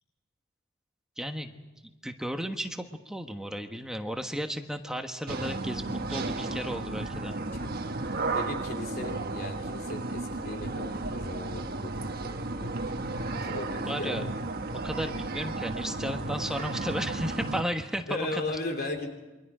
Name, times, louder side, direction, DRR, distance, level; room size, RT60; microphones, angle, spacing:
voice 1, 1.2-1.5 1.8-7.3 13.9-14.2 14.8-18.4, equal, 5° right, 5 dB, 1.3 m, -34 dB
sound 1, 5.3-17.6, right 2 dB, 50° right, 1.3 m, -33 dB
voice 2, 8.3-12.8 13.2-14.3 16.4-16.7 18.1-19.1, left 2 dB, 55° left, 3 dB, 3.4 m, -37 dB
28.0 x 24.0 x 5.0 m, 1.1 s
head